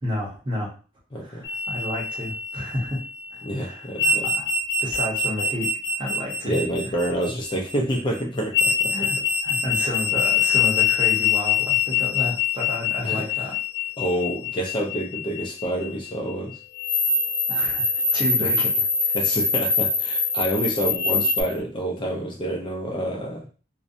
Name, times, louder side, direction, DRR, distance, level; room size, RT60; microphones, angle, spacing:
voice 1, 0.0-0.7 1.2-3.0 3.3-4.5 4.8-5.7 6.0-6.6 8.9-9.2 9.4-13.5 17.5-18.7, left 1 dB, 25° right, -3 dB, 0.8 m, -31 dB
voice 2, 1.1-1.5 3.4-4.3 6.4-9.1 9.8-9.9 13.0-13.2 14.0-16.6 18.4-18.5 19.1-23.5, right 1 dB, 25° left, 0 dB, 0.4 m, -28 dB
sound 1, 1.4-3.3 4.0-7.9 8.5-15.9 16.8-21.4, left 5 dB, 70° left, 0.8 m, -24 dB
2.6 x 2.1 x 2.5 m, 0.37 s
head